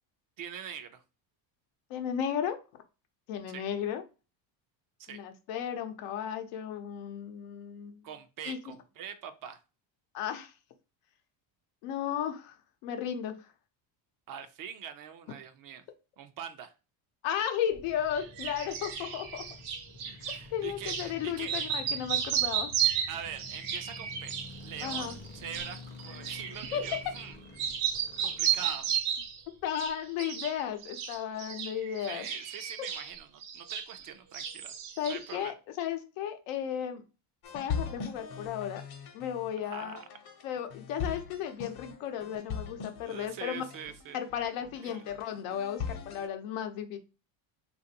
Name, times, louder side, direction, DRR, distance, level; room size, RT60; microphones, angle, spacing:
voice 1, 0.4-1.0 3.5-3.7 5.0-5.2 8.0-9.6 14.3-15.8 16.2-16.7 20.0-21.7 23.1-27.4 28.2-29.3 32.1-34.7 35.1-35.5 39.6-40.0 43.0-44.2 44.8-45.0, right 8 dB, 45° right, 9 dB, 0.4 m, -44 dB
voice 2, 1.9-2.6 3.3-4.0 5.1-8.1 8.4-8.6 10.1-10.5 11.8-12.6 12.8-13.4 17.2-19.5 20.5-22.7 24.8-25.1 26.7-26.9 29.6-32.3 35.0-37.0 37.5-38.8 39.1-40.0 40.4-43.6 44.1-47.0, left 9 dB, 85° left, 7 dB, 0.8 m, -34 dB
sound 1, 17.7-29.9, left 2 dB, 20° left, 0.5 m, -49 dB
sound 2, 18.1-20.4 20.8-21.1 21.4-27.3 27.6-29.4 29.7-30.5 30.8-34.1 34.3-35.4, right 9 dB, 80° right, 0.8 m, -33 dB
sound 3, 37.4-46.3, left 6 dB, 50° left, 0.8 m, -40 dB
3.2 x 2.5 x 2.8 m, 0.31 s
cardioid pair, 130°, 48 cm